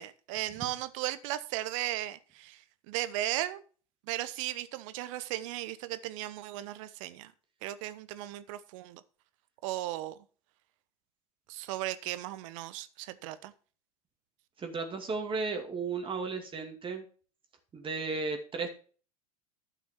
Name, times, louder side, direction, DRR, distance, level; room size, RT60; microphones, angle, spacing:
voice 1, 0.0-3.6 4.1-7.3 7.6-9.0 9.6-10.2 11.5-13.5, right 15 dB, 55° right, 1.0 m, -36 dB
voice 2, 14.6-17.0 17.7-18.7, right 4 dB, 25° right, 2.4 m, -34 dB
11.5 x 6.0 x 5.9 m
figure-of-eight pair, 80°, 20 cm